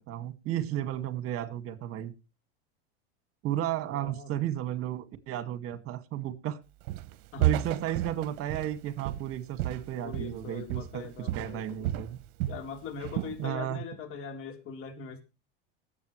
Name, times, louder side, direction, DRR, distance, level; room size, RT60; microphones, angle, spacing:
voice 1, 0.1-2.1 3.4-6.6 7.4-12.2 13.4-13.8, right 12 dB, 45° right, 2.0 m, -33 dB
voice 2, 3.9-4.3 7.3-7.6 10.0-11.8 12.5-15.2, left 6 dB, 45° left, 3.8 m, -41 dB
Walk footsteps, 6.9-7.2 7.4-10.4 10.7-11.0 11.3-12.7 13.0-13.4, right 14 dB, 65° right, 1.0 m, -32 dB
19.0 x 8.2 x 3.2 m
supercardioid pair, 105°, 31 cm